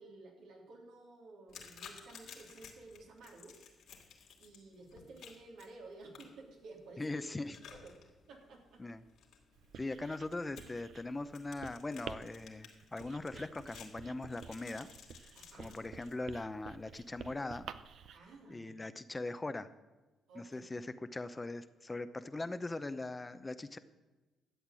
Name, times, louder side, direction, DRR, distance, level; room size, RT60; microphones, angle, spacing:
voice 1, 0.0-3.6 4.4-7.2 7.7-7.9 8.3-8.8 15.3-15.8 18.1-18.7 20.3-20.6, right 3 dB, 85° right, -2 dB, 3.4 m, -53 dB
sound 1, 1.5-16.1, left 7 dB, 80° left, 2.6 m, -56 dB
voice 2, 7.0-7.6 8.8-9.1 9.7-14.9 15.6-17.7 18.5-19.7 20.3-23.8, left 2 dB, 20° left, 11 dB, 0.7 m, -40 dB
Writing, 9.5-18.2, right 8 dB, 70° right, 0.6 m, -51 dB
12.5 x 8.0 x 7.5 m, 1.2 s
cardioid pair, 90°, 0 cm